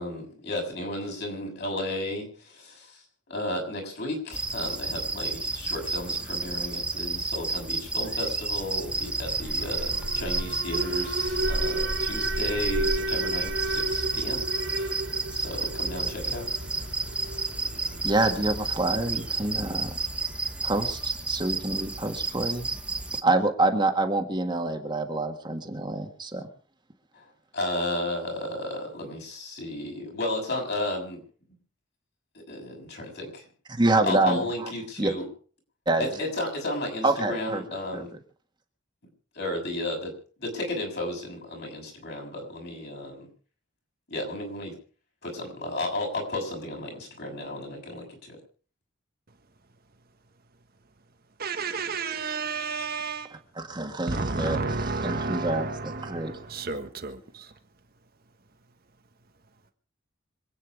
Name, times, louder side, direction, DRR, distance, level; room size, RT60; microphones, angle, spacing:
voice 1, 0.0-14.4 14.8-15.1 15.3-16.5 27.1-27.3 27.5-31.2 32.3-33.5 34.0-35.3 36.0-38.1 39.4-40.1 40.4-43.3 44.1-44.7 45.2-48.4, left 1 dB, 55° left, 6.8 m, -33 dB
sound 1, 4.3-23.2, right 3 dB, 5° right, 0.9 m, -31 dB
Alarm, 8.9-20.9, right 1 dB, 70° right, 3.6 m, -33 dB
voice 2, 18.0-20.0 20.6-22.7 23.2-26.5 33.7-34.7 35.0-35.2 35.9-36.1 37.0-37.6 37.9-38.0 53.7-54.6 55.0-55.7 56.0-56.3, right 2 dB, 25° right, 1.8 m, -26 dB
voice 3, 51.4-53.4 54.1-57.6, right 4 dB, 50° right, 1.4 m, -32 dB
26.0 x 9.3 x 4.9 m
head